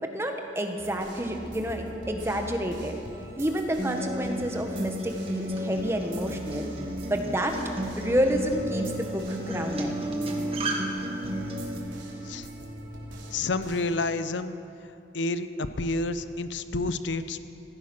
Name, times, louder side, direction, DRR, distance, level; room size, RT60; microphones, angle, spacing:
voice 1, 0.0-3.0 3.4-6.7 7.1-7.6 8.0-9.9, equal, 15° right, 4 dB, 1.2 m, -29 dB
sound 1, 0.8-14.0, right 1 dB, 90° right, 3.2 m, -42 dB
Acoustic guitar, 3.8-11.8, equal, 30° right, 1.6 m, -34 dB
sound 2, 9.7-13.1, right 1 dB, ahead, 4.6 m, -36 dB
voice 2, 13.3-14.6 15.1-17.4, left 2 dB, 80° left, 12 dB, 0.6 m, -29 dB
15.5 x 15.0 x 6.1 m, 2.7 s
head